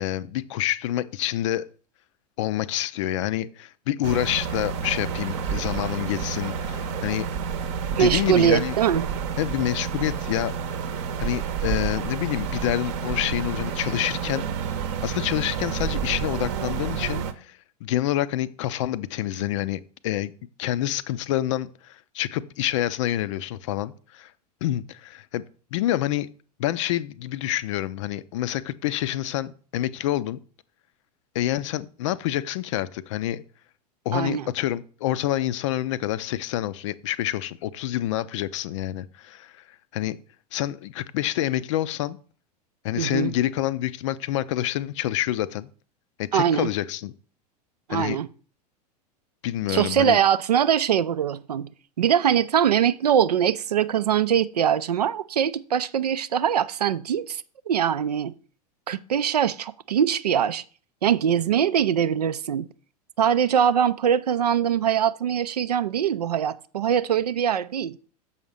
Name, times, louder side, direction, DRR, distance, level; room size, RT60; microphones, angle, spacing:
voice 1, 0.0-1.7 2.4-7.3 7.9-8.8 9.4-10.5 11.2-14.4 15.0-20.3 20.6-24.3 24.6-25.4 25.7-26.3 26.6-30.4 31.3-33.4 34.1-39.6 39.9-40.2 40.5-42.2 42.8-45.7 46.2-47.1 47.9-48.2 49.4-50.2, left 13 dB, 50° left, 0.5 m, -27 dB
sound 1, 4.0-17.3, right 7 dB, 45° right, 0.8 m, -29 dB
voice 2, 8.0-9.0 34.1-34.5 43.0-43.3 46.3-46.7 47.9-48.3 49.7-51.7 52.0-58.3 58.9-60.6 61.0-62.7 63.2-68.0, right 9 dB, 70° right, 0.4 m, -22 dB
7.0 x 5.7 x 5.0 m
figure-of-eight pair, 85°, 21 cm